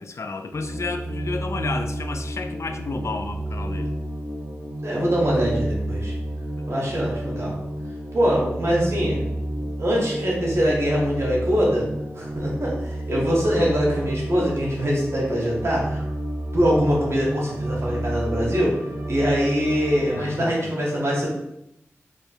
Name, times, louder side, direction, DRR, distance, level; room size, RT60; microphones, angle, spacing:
voice 1, 0.0-3.9 6.6-6.7 13.6-13.7 20.2-20.7, left 3 dB, 65° left, 6 dB, 0.4 m, -31 dB
sound 1, 0.5-20.3, right 1 dB, 80° right, 1.0 m, -30 dB
voice 2, 4.8-6.1 6.7-7.6 8.1-9.3 9.5-11.9 12.1-16.0 16.5-18.8 19.1-21.3, equal, 60° right, -4 dB, 1.5 m, -23 dB
3.4 x 3.2 x 4.4 m, 0.81 s
wide cardioid pair, 70°, 5 cm